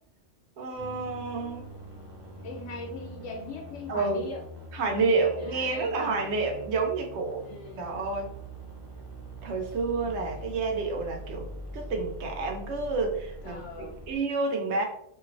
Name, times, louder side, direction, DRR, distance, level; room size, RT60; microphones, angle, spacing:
voice 1, 0.6-1.7 3.9-4.2 4.7-7.4 7.8-8.3 9.4-11.5 11.7-13.6 14.1-14.8, right 3 dB, 75° right, 2 dB, 0.9 m, -29 dB
sound 1, 0.8-14.2, right 1 dB, 30° right, 0.5 m, -43 dB
voice 2, 2.4-4.4 5.4-6.2 7.4-8.0 10.0-10.6 13.4-14.0, left 3 dB, 85° left, -1 dB, 1.0 m, -41 dB
3.0 x 2.6 x 2.5 m, 0.74 s
omnidirectional pair, 1.2 m